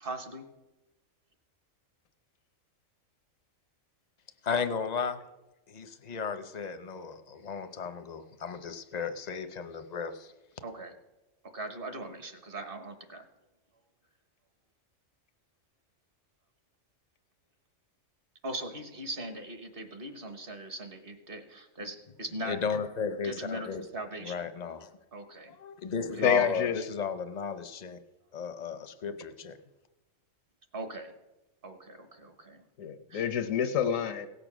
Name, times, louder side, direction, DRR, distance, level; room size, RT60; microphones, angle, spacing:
voice 1, 0.0-0.4 10.6-10.9 11.5-13.2 18.4-22.6 23.2-24.4 25.1-25.5 26.2-26.5 30.7-31.1 31.6-32.6 33.1-33.2, right 1 dB, 45° right, 7 dB, 1.3 m, -40 dB
voice 2, 4.4-5.2 5.7-10.3 22.4-23.8 24.2-25.0 25.5-28.0 28.3-29.6, left 6 dB, 40° left, 10 dB, 0.6 m, -34 dB
voice 3, 26.2-26.8 29.1-29.2 32.8-34.3, left 7 dB, 80° left, 10 dB, 1.1 m, -28 dB
17.0 x 6.9 x 6.1 m, 1.0 s
omnidirectional pair, 1.4 m